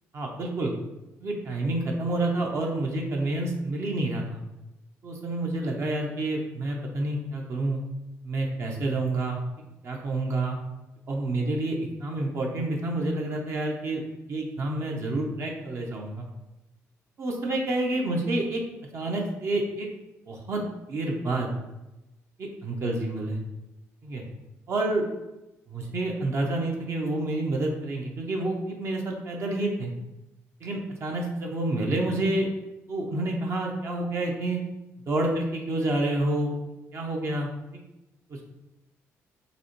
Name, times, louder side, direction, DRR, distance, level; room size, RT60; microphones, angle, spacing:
voice 1, 0.1-0.7 1.2-4.4 5.0-7.8 8.2-9.4 9.8-10.6 11.1-14.0 14.3-16.3 17.2-18.6 18.9-19.9 20.3-20.6 20.9-21.5 22.4-23.4 24.0-24.2 24.7-25.0 25.7-29.9 30.6-32.5 32.9-34.6 35.1-36.5 36.9-37.5 38.3-38.4, right 2 dB, 50° right, 0 dB, 0.7 m, -28 dB
5.0 x 2.1 x 3.1 m, 0.95 s
cardioid pair, 95°, 6 cm